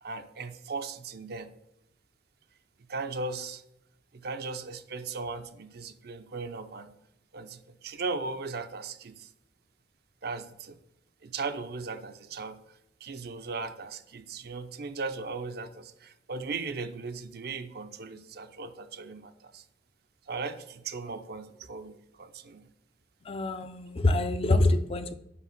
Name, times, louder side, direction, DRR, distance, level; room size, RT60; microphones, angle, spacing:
voice 1, 0.0-1.5 2.9-3.6 4.1-6.9 7.3-9.3 10.2-10.8 11.2-12.6 13.0-19.6 20.3-22.7, right 4 dB, 60° right, 9 dB, 0.6 m, -37 dB
voice 2, 23.2-25.1, left 2 dB, 35° left, 10 dB, 0.4 m, -25 dB
5.7 x 5.1 x 5.8 m, 0.83 s
head